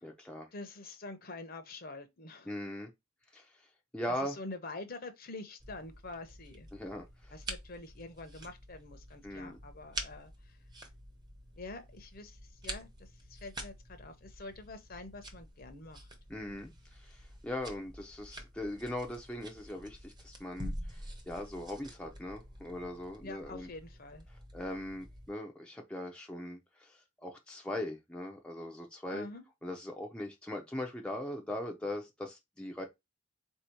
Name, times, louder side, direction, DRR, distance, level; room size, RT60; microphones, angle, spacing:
voice 1, 0.0-0.5 2.5-2.9 3.3-3.5 3.9-4.4 6.7-7.4 9.2-9.6 16.3-23.7 24.5-29.3 29.6-32.8, left 1 dB, 5° left, 0.5 m, -40 dB
voice 2, 0.5-2.5 4.1-6.7 7.3-10.6 11.6-16.1 23.2-24.3 29.1-29.4, left 2 dB, 45° left, 0.8 m, -46 dB
sound 1, 5.6-25.3, right 1 dB, 20° right, 0.8 m, -47 dB
4.1 x 2.8 x 4.4 m
head